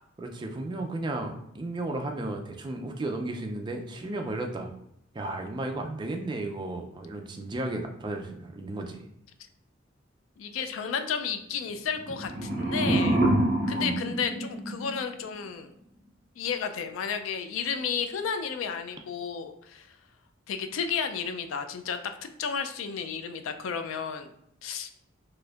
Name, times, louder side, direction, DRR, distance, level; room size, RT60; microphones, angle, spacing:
voice 1, 0.2-4.7 5.1-9.0 13.6-14.0, right 2 dB, 25° right, 3 dB, 0.4 m, -34 dB
voice 2, 10.4-13.3 13.7-15.7 16.4-19.9 20.5-24.3 24.6-24.9, left 6 dB, 90° left, 8 dB, 0.4 m, -32 dB
sound 1, 11.9-15.1, right 1 dB, 45° right, 0.8 m, -27 dB
4.2 x 2.6 x 2.4 m, 0.77 s
head